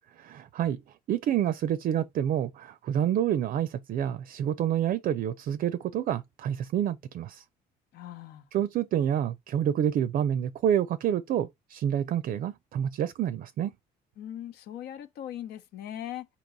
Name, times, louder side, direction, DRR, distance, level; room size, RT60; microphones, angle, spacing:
voice 1, 0.2-0.8 1.1-7.4 8.5-13.7, right 10 dB, 55° right, 0.5 m, -28 dB
voice 2, 7.9-8.5 14.2-16.3, left 11 dB, 75° left, 0.9 m, -39 dB
4.6 x 2.9 x 4.0 m
cardioid pair, 110°, 17 cm